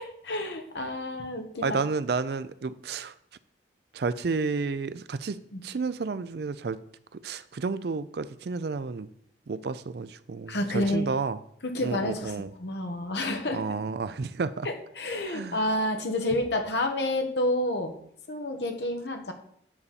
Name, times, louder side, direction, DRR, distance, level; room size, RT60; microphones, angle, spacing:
voice 1, 0.0-1.8 5.5-5.6 10.5-11.1 11.6-13.6 14.6-17.9 18.3-19.3, left 1 dB, 65° left, 1.3 m, -29 dB
voice 2, 1.6-3.1 3.9-5.4 5.6-6.8 7.2-9.1 9.5-11.4 11.8-12.5 13.5-14.7 15.3-15.6, right 4 dB, 60° right, 0.4 m, -31 dB
9.4 x 4.2 x 6.9 m
head